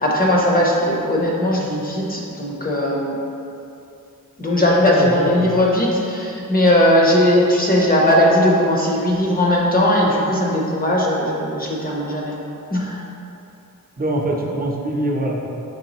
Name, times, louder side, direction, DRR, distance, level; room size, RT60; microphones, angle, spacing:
voice 1, 0.0-3.2 4.4-12.4 12.7-13.0, left 1 dB, 25° left, -3 dB, 0.7 m, -18 dB
voice 2, 4.9-5.6 14.0-15.6, right 1 dB, 25° right, -1 dB, 0.6 m, -24 dB
5.3 x 3.3 x 3.0 m, 2.7 s
wide cardioid pair, 90°, 34 cm